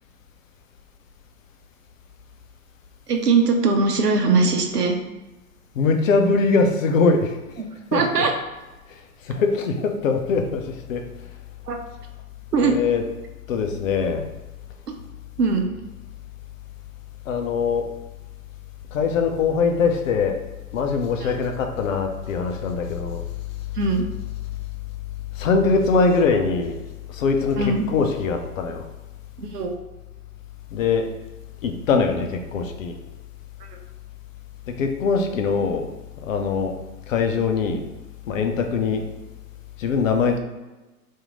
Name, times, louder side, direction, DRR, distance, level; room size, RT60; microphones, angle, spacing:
voice 1, 3.1-5.0 7.9-8.3 11.7-11.8 12.5-12.8 14.9-15.0 15.4-15.7 21.2-21.3 23.8-24.0 27.6-27.8 29.4-29.7, right 4 dB, 80° right, 3 dB, 0.8 m, -20 dB
voice 2, 5.7-7.6 7.9-8.0 8.9-11.1 12.6-13.0 13.5-14.2 17.3-17.9 18.9-20.4 20.7-23.3 25.3-26.8 27.1-28.9 30.7-31.1 31.6-33.0 34.7-35.9 36.2-36.7 37.1-37.9 38.3-39.0 39.8-40.4, left 4 dB, 55° left, 4 dB, 0.7 m, -22 dB
2.9 x 2.7 x 3.6 m, 1.1 s
figure-of-eight pair, 105°, 46 cm